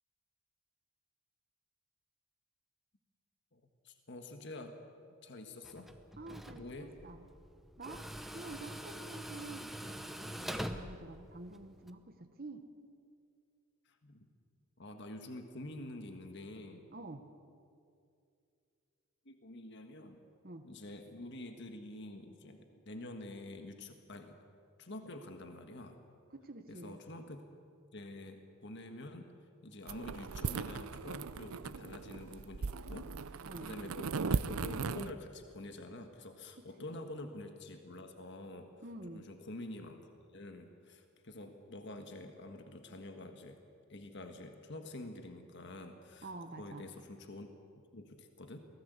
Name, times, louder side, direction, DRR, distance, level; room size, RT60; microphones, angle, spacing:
voice 1, 3.5-4.8 5.2-5.9 6.5-6.9 13.8-14.3 14.8-16.8 19.2-20.2 20.6-24.4 24.8-26.0 26.7-27.4 27.9-29.3 29.6-38.7 39.1-40.1 40.3-43.6 43.9-46.3 46.6-47.5 47.9-48.6, left 1 dB, 55° left, 6 dB, 1.6 m, -47 dB
Tools, 5.6-11.9, equal, ahead, 0.8 m, -45 dB
voice 2, 6.2-7.3 7.8-12.6 16.9-17.2 20.4-20.7 26.3-27.0 33.4-33.8 36.6-37.0 38.8-39.3 46.2-46.9, right 2 dB, 45° right, 6 dB, 1.1 m, -48 dB
sound 1, 29.9-35.1, right 4 dB, 80° right, 0.6 m, -38 dB
23.0 x 18.0 x 8.2 m, 2.4 s
head